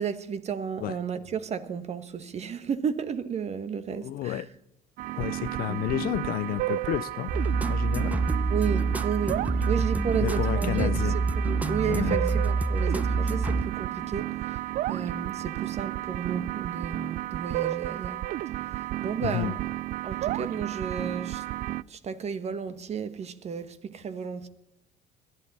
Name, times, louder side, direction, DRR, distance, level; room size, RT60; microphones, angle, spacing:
voice 1, 0.0-4.5 5.7-5.8 8.5-10.9 11.3-18.2 18.6-19.6 20.0-24.5, right 7 dB, 40° right, 1.3 m, -33 dB
voice 2, 3.9-4.5 5.1-7.3 7.7-8.2 10.2-11.2 11.8-12.2 19.2-19.5, left 15 dB, 60° left, 0.5 m, -31 dB
sound 1, 5.0-21.8, right 16 dB, 55° right, 0.4 m, -32 dB
sound 2, 7.3-14.1, right 3 dB, 10° right, 0.8 m, -27 dB
22.0 x 12.5 x 4.1 m
supercardioid pair, 100°, 17 cm